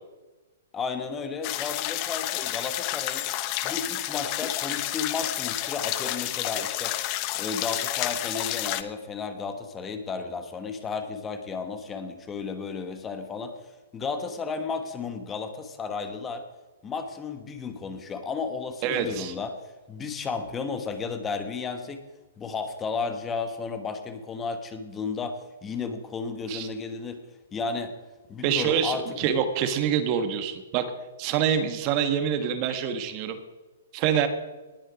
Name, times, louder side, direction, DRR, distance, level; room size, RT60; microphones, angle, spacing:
voice 1, 0.7-3.3 3.6-7.0 7.3-13.5 13.9-16.4 16.8-19.5 19.9-22.0 22.4-27.2 27.5-28.0 28.3-29.2, left 5 dB, 20° left, 8 dB, 1.2 m, -33 dB
sound 1, 1.4-8.8, left 15 dB, 40° left, 0.8 m, -30 dB
voice 2, 18.8-19.3 26.5-26.7 28.4-30.8 31.2-33.4 33.9-34.3, right 8 dB, 40° right, 8 dB, 1.3 m, -26 dB
19.0 x 6.4 x 5.1 m, 1.2 s
hypercardioid pair, 130°, 0 cm